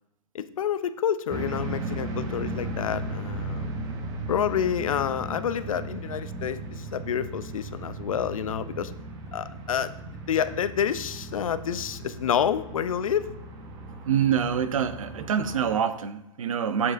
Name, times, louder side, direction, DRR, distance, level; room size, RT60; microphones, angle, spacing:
voice 1, 0.3-3.7 4.3-8.9 9.3-9.9 10.3-13.3, left 8 dB, 85° left, 13 dB, 0.5 m, -28 dB
sound 1, 1.3-15.7, right 2 dB, 20° right, 0.7 m, -36 dB
voice 2, 14.1-16.9, right 8 dB, 80° right, 11 dB, 0.6 m, -26 dB
7.0 x 6.4 x 2.6 m, 0.90 s
hypercardioid pair, 145°, 17 cm